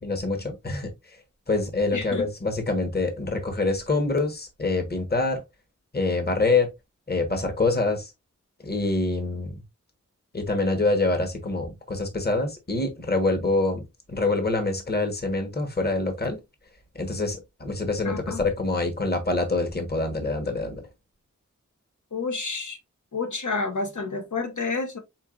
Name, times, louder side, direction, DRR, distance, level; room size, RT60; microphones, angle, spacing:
voice 1, 0.0-0.9 1.5-5.4 5.9-6.7 7.1-8.1 8.6-9.6 10.3-13.8 14.1-16.4 16.9-20.8, left 3 dB, 35° left, 1.1 m, -25 dB
voice 2, 1.9-2.3 18.0-18.4 22.1-22.8 23.1-25.0, left 4 dB, 80° left, 1.1 m, -29 dB
4.4 x 4.1 x 2.4 m
wide cardioid pair, 80°, 30 cm